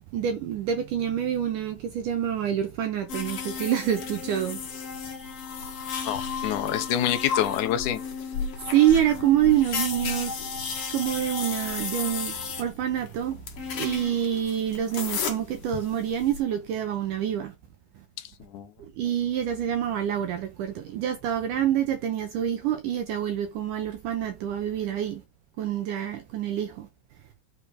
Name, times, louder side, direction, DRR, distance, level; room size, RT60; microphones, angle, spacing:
voice 1, 0.1-4.6 8.7-10.4 10.9-13.4 13.7-17.5 19.0-25.2 25.6-26.9, right 10 dB, 75° right, 1.9 m, -26 dB
sound 1, 3.1-16.4, left 6 dB, 50° left, 2.1 m, -34 dB
voice 2, 6.0-8.0 18.2-18.7, left 11 dB, 85° left, 1.7 m, -27 dB
6.9 x 5.0 x 5.0 m
omnidirectional pair, 4.8 m